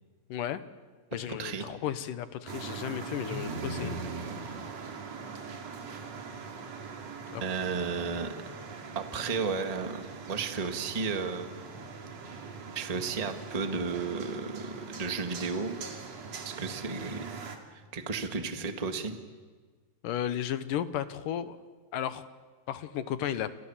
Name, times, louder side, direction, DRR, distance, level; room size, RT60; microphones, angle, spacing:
voice 1, 0.3-0.6 1.1-4.0 7.3-7.4 20.0-21.6 21.9-22.2 22.7-23.5, left 10 dB, 75° left, 12 dB, 2.6 m, -34 dB
sound 1, 2.5-17.6, right 4 dB, 50° right, 3.4 m, -41 dB
voice 2, 7.4-8.3 8.9-11.6 12.7-15.8 16.4-17.4 17.9-19.1, right 5 dB, 20° right, 6 dB, 1.1 m, -33 dB
29.5 x 27.5 x 7.3 m, 1.5 s
omnidirectional pair, 4.0 m